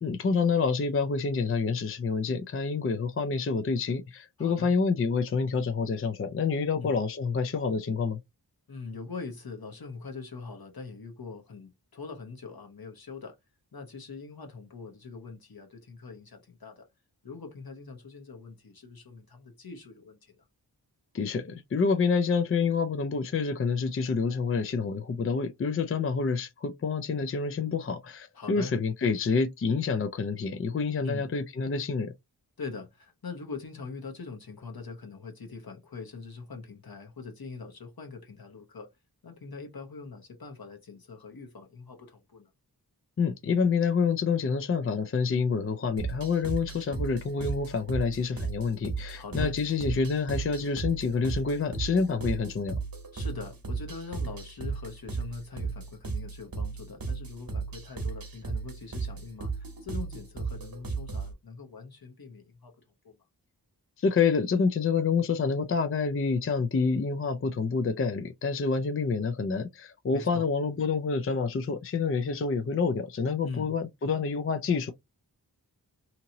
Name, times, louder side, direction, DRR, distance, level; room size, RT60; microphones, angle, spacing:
voice 1, 0.0-8.2 21.1-32.1 43.2-52.8 64.0-74.9, left 5 dB, 35° left, 0.4 m, -28 dB
voice 2, 4.4-4.7 6.7-7.0 8.7-13.4 13.7-16.9 17.2-20.5 28.3-28.7 31.0-31.3 32.6-38.9 39.2-42.5 49.2-49.6 53.1-62.8 63.0-63.2 70.1-70.5 73.4-73.7, left 4 dB, 60° left, 0.9 m, -42 dB
sound 1, 46.0-61.3, right 4 dB, 55° right, 0.9 m, -35 dB
2.8 x 2.7 x 2.6 m
wide cardioid pair, 55°, 41 cm